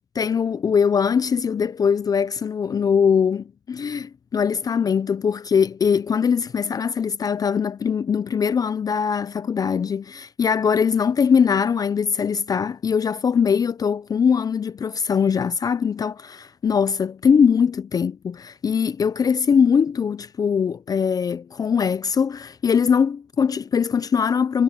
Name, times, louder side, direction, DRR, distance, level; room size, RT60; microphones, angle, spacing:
voice 1, 0.1-24.6, left 6 dB, 20° left, 0.8 m, -21 dB
supercardioid pair, 105°, 17 cm